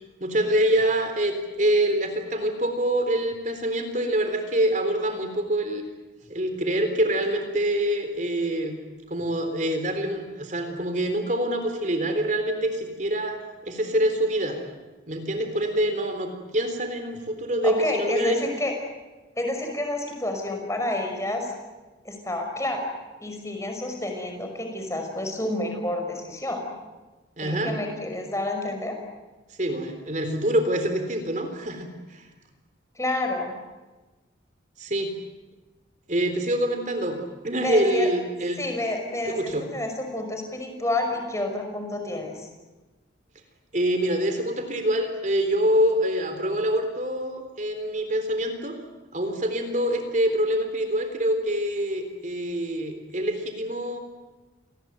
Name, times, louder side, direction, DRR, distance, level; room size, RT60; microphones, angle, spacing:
voice 1, 0.2-5.8 6.3-8.8 9.1-14.6 15.1-18.4 27.4-27.8 29.6-32.2 34.8-35.1 36.1-38.7 39.3-39.7 43.7-48.8 49.1-54.0, right 1 dB, 40° right, 6 dB, 3.7 m, -25 dB
voice 2, 17.6-18.7 19.4-21.5 22.0-22.9 23.2-26.6 27.4-29.0 33.0-33.5 37.6-38.1 38.6-42.5, left 1 dB, 15° left, 4 dB, 5.6 m, -29 dB
29.0 x 20.5 x 9.3 m, 1.2 s
head